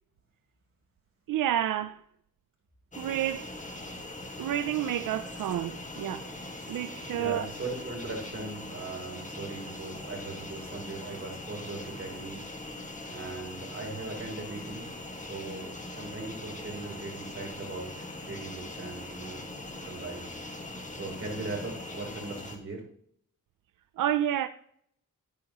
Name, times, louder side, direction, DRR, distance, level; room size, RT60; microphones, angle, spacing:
voice 1, 1.3-2.0 3.0-3.5 4.4-6.3 6.7-7.5 24.0-24.5, right 11 dB, 85° right, 0.5 m, -29 dB
sound 1, 2.9-22.6, left 2 dB, 25° left, 1.8 m, -41 dB
voice 2, 7.1-12.5 13.1-14.9 15.2-20.2 20.9-22.9, right 3 dB, 40° right, 3.5 m, -39 dB
10.5 x 8.6 x 3.0 m
cardioid pair, 90°, 32 cm